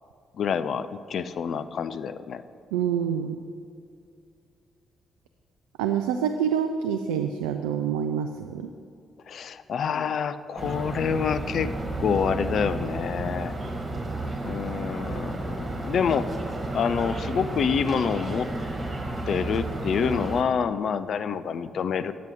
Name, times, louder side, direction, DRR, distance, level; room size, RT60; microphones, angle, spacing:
voice 1, 0.4-2.4 9.3-11.7 12.0-13.5 14.4-16.3 16.7-18.5 19.3-22.1, left 6 dB, 60° left, 13 dB, 0.4 m, -27 dB
voice 2, 2.7-3.4 5.8-8.7, right 8 dB, 80° right, 6 dB, 0.3 m, -26 dB
sound 1, 10.6-20.4, right 2 dB, 35° right, 1.6 m, -32 dB
9.3 x 8.9 x 3.6 m, 2.4 s
hypercardioid pair, 40°, 0 cm